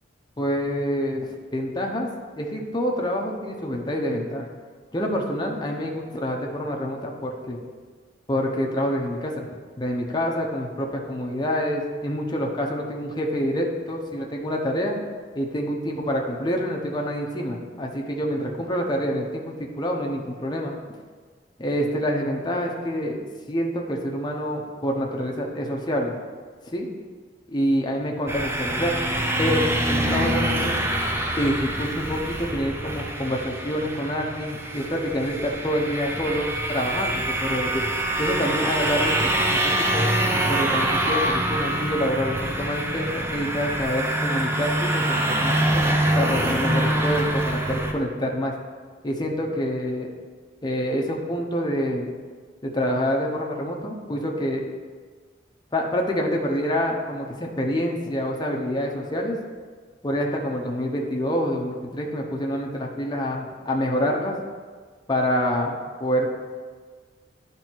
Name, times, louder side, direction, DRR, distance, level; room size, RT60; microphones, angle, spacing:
voice 1, 0.4-2.1 2.4-4.5 4.9-7.6 8.3-9.5 9.8-15.0 15.3-20.8 21.6-26.1 26.7-26.9 27.5-29.0 29.4-30.8 31.3-37.8 38.2-40.1 40.5-48.5 49.0-50.1 50.6-52.1 52.6-54.7 55.7-59.4 60.0-64.4 65.1-66.3, equal, 25° left, 0 dB, 0.8 m, -27 dB
sound 1, 28.3-47.9, right 1 dB, 15° right, 0.5 m, -25 dB
10.0 x 3.4 x 4.5 m, 1.5 s
head